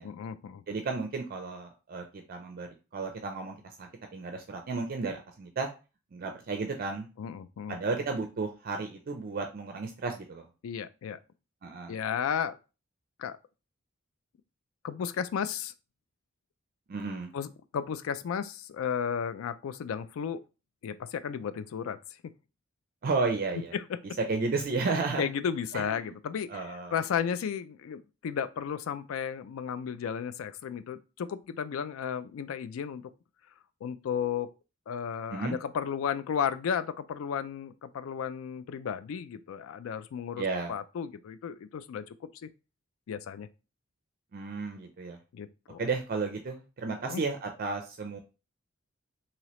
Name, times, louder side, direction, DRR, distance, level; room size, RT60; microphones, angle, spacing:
voice 1, 0.0-0.6 7.2-7.8 10.6-11.2 11.9-12.6 13.2-13.4 14.8-15.7 17.3-20.4 20.8-22.0 23.7-24.0 25.2-33.0 33.8-34.5 34.9-42.2 42.4-42.5 43.1-43.5 45.3-45.8 47.0-47.2, left 7 dB, 80° left, 0.3 m, -34 dB
voice 2, 0.7-5.7 6.1-7.1 7.7-10.4 11.6-12.0 16.9-17.3 23.0-23.7 24.3-25.2 25.7-26.1 26.5-27.0 35.3-35.6 40.4-40.7 44.3-45.2 45.8-48.2, right 4 dB, 45° right, 0.4 m, -33 dB
2.9 x 2.8 x 3.0 m
head